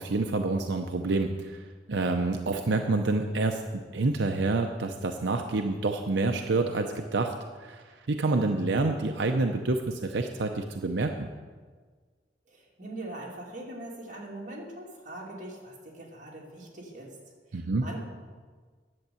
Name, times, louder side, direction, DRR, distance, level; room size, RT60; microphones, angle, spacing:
voice 1, 0.0-7.3 7.6-11.3 17.5-17.9, right 3 dB, 90° right, 4 dB, 0.7 m, -28 dB
voice 2, 12.5-17.2 17.5-18.0, right 1 dB, 45° right, -3 dB, 2.7 m, -42 dB
11.0 x 7.9 x 7.0 m, 1.5 s
head